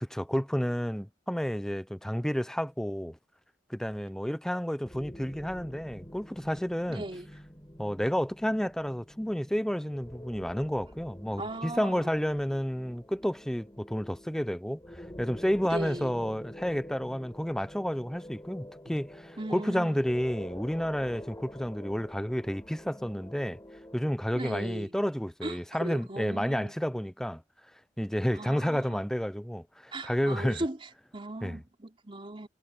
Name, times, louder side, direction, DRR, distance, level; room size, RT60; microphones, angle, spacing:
voice 1, 0.0-3.2 3.7-7.0 7.8-23.6 23.9-27.4 28.0-30.6 31.4-31.6, equal, 5° left, 0.6 m, -31 dB
sound 1, 4.8-24.0, equal, 20° left, 6.4 m, -47 dB
voice 2, 6.9-7.3 11.4-12.1 15.6-16.1 18.9-19.0 19.4-20.0 24.3-25.0 25.4-26.7 28.3-29.0 29.9-32.5, right 1 dB, 30° right, 3.4 m, -38 dB
head